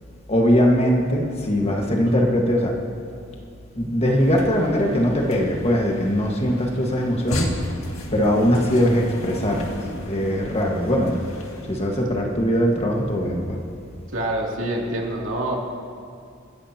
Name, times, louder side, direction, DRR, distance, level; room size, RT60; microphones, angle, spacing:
voice 1, 0.3-2.8 3.7-7.6 8.1-11.3 11.7-13.6, equal, 30° left, 0 dB, 1.6 m, -21 dB
sound 1, 4.0-11.9, left 1 dB, 85° left, 1.9 m, -35 dB
voice 2, 14.1-15.5, right 1 dB, 70° right, -2 dB, 2.8 m, -26 dB
29.5 x 14.0 x 2.9 m, 2.4 s
head